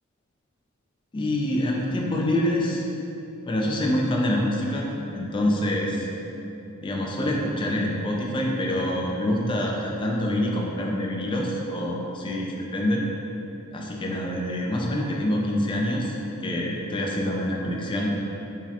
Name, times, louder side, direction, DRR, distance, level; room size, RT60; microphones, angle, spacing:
voice 1, 1.1-2.8 3.5-4.9 5.1-6.1 6.8-13.0 13.7-16.2 16.4-18.1, left 1 dB, 25° left, -1 dB, 0.3 m, -26 dB
4.6 x 2.1 x 2.8 m, 2.9 s
head